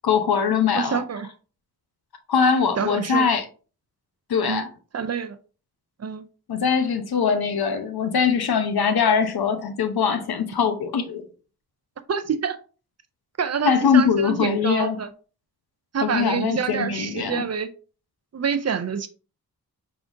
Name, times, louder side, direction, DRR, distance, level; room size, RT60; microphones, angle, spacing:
voice 1, 0.0-1.0 2.3-3.4 4.3-4.7 6.5-11.3 13.6-15.0 16.0-17.5, left 6 dB, 75° left, 0.8 m, -22 dB
voice 2, 0.8-1.3 2.8-3.3 4.5-4.6 4.9-5.4 6.0-6.2 12.1-12.6 13.4-15.1 15.9-17.7 18.3-19.1, right 6 dB, 45° right, 0.4 m, -26 dB
4.8 x 3.7 x 2.6 m
wide cardioid pair, 165°, 37 cm